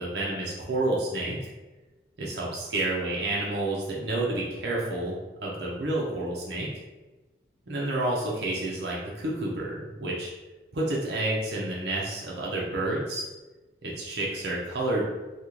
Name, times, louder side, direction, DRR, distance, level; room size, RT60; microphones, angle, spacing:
voice 1, 0.0-1.5 2.2-6.7 7.7-10.3 10.7-13.3 13.8-15.0, right 2 dB, 70° right, -4 dB, 0.6 m, -29 dB
3.0 x 2.4 x 3.7 m, 1.2 s
head